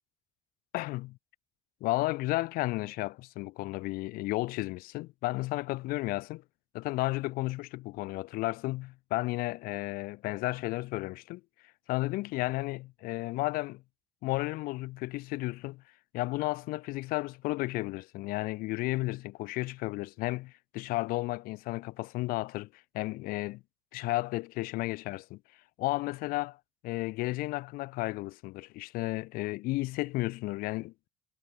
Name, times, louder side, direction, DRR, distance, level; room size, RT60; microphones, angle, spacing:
voice 1, 0.7-1.2 1.8-6.4 6.7-11.4 11.9-13.8 14.2-15.8 16.1-22.7 22.9-23.6 23.9-25.4 25.8-26.6 26.8-31.1, left 20 dB, 70° left, 0.6 m, -33 dB
cardioid pair, 115°, 15 cm